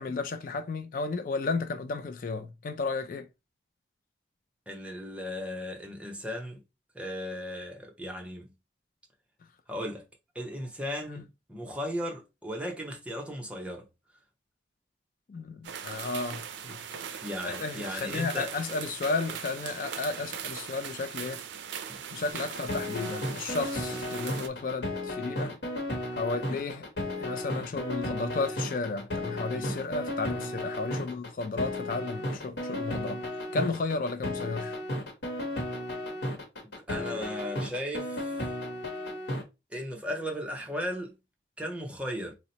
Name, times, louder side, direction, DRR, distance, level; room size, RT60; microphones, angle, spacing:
voice 1, 0.0-3.3 11.1-11.2 15.3-21.4 22.1-25.6 26.1-26.8 27.2-33.2 33.5-34.8, left 3 dB, 50° left, 0.3 m, -33 dB
voice 2, 4.7-6.6 6.9-8.5 9.7-10.0 10.3-11.2 11.5-13.8 17.2-18.5 29.6-29.8 36.9-38.5 39.7-41.1 41.6-42.3, equal, 5° right, 0.6 m, -36 dB
sound 1, 15.6-24.5, right 8 dB, 80° right, 0.4 m, -40 dB
sound 2, 22.3-39.4, left 1 dB, 75° left, 0.9 m, -34 dB
2.8 x 2.0 x 4.0 m
head